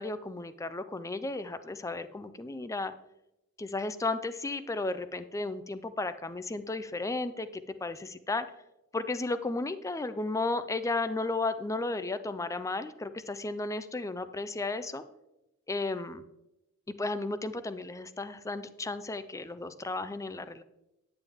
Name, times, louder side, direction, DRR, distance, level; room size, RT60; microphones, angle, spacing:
voice 1, 0.0-2.9 3.6-7.5 7.8-8.5 8.9-15.0 15.7-16.2 17.0-20.6, left 2 dB, 15° left, 12 dB, 0.4 m, -34 dB
9.2 x 9.0 x 3.5 m, 0.91 s
head